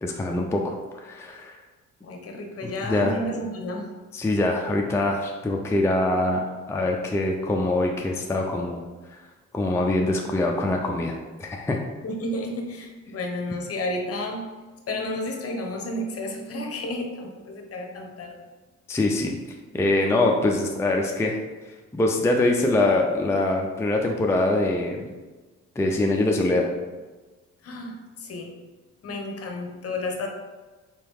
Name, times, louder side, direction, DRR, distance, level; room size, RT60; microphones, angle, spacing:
voice 1, 0.0-0.7 1.0-1.5 2.6-3.2 4.1-8.8 9.5-11.1 11.4-11.8 18.9-19.4 19.7-21.4 21.9-25.1 25.8-26.7, left 2 dB, 10° left, 1 dB, 0.4 m, -23 dB
voice 2, 2.0-3.9 12.0-14.5 14.9-18.4 27.6-28.5 29.0-30.3, left 1 dB, 50° left, 2 dB, 0.9 m, -31 dB
4.6 x 2.9 x 3.5 m, 1.3 s
cardioid pair, 90°, 30 cm